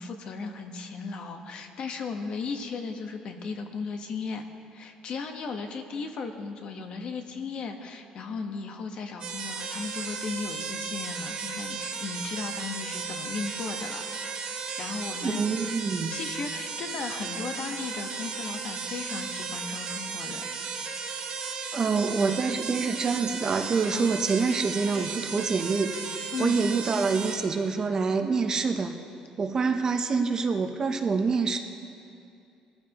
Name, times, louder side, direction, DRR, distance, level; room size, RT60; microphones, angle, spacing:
voice 1, 0.0-4.4 4.7-14.0 14.3-15.4 15.7-15.8 16.1-20.5 20.8-21.2 23.9-24.1 26.3-26.6, left 4 dB, 50° left, 5 dB, 1.1 m, -36 dB
sound 1, 9.2-27.4, right 5 dB, 50° right, 2.6 m, -35 dB
voice 2, 15.2-16.1 21.7-26.0 26.4-28.9 29.4-31.6, right 4 dB, 30° right, 6 dB, 0.8 m, -26 dB
22.0 x 14.5 x 3.0 m, 2.5 s
cardioid pair, 150°, 2 cm